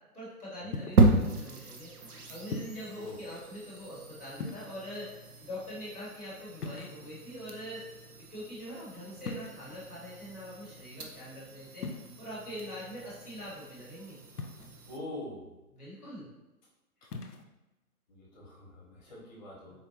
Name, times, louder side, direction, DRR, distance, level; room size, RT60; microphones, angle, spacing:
voice 1, 0.1-1.9 2.3-5.1 5.4-7.8 8.3-11.9 12.2-14.2 15.8-16.3 19.7-19.8, equal, 5° right, -25 dB, 0.5 m, -43 dB
sound 1, 0.7-1.2 2.5-2.9 4.3-5.0 6.6-7.3 9.2-9.8 11.8-12.1 14.4-14.9 17.0-17.4, left 4 dB, 85° left, 0.6 m, -40 dB
sound 2, 1.0-15.0, right 2 dB, 80° right, 0.7 m, -34 dB
voice 2, 14.9-15.5 18.1-19.7, left 1 dB, 30° left, -4 dB, 1.1 m, -44 dB
4.2 x 2.8 x 2.8 m, 1.0 s
figure-of-eight pair, 135°, 45 cm